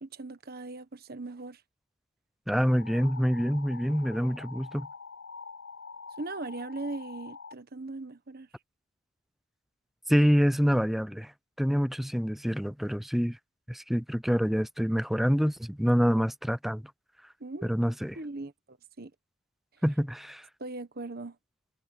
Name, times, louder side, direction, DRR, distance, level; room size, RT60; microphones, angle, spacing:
voice 1, 0.0-1.6 6.2-8.5 17.4-17.7 18.1-19.1 20.6-21.4, right 2 dB, 50° right, 1.3 m, -39 dB
sound 1, 2.5-7.5, left 5 dB, 75° left, 5.4 m, -45 dB
voice 2, 2.5-4.9 10.1-11.3 11.6-13.4 13.7-16.8 17.6-18.2 19.8-20.4, equal, ahead, 0.5 m, -26 dB
head